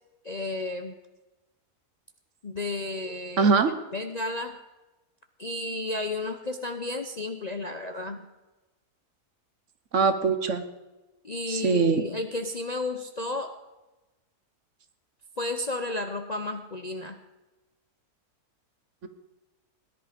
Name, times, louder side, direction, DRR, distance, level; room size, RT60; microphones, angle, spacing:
voice 1, 0.2-0.9 2.4-3.5 3.9-4.6 5.4-8.2 11.2-13.5 15.4-17.2, left 2 dB, 40° left, 6 dB, 0.6 m, -32 dB
voice 2, 3.4-3.7 9.9-10.6 11.5-12.1 19.0-19.1, right 4 dB, 55° right, 10 dB, 1.3 m, -22 dB
18.0 x 11.0 x 5.1 m, 1.1 s
omnidirectional pair, 1.6 m